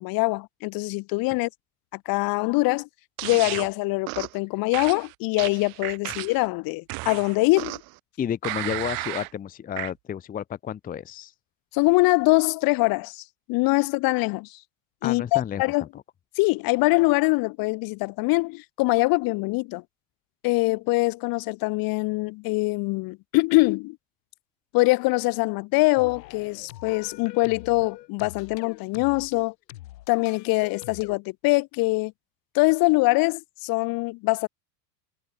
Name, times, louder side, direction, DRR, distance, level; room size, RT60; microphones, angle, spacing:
voice 1, 0.0-1.5 2.1-2.9 3.2-7.8 11.7-13.2 13.5-14.6 15.0-15.8 16.4-19.8 20.4-24.0 24.7-29.5 30.1-32.1 32.5-34.5, left 24 dB, 45° left, 1.0 m, -23 dB
sound 1, 3.2-3.7 4.1-4.4 4.7-6.5 6.9-8.0 8.4-9.3 9.8-9.9, right 26 dB, 45° right, 1.0 m, -33 dB
voice 2, 8.2-11.3 15.0-16.0, left 9 dB, 15° left, 0.7 m, -31 dB
sound 2, 25.9-31.2, left 16 dB, 75° left, 7.6 m, -44 dB
supercardioid pair, 115°, 50 cm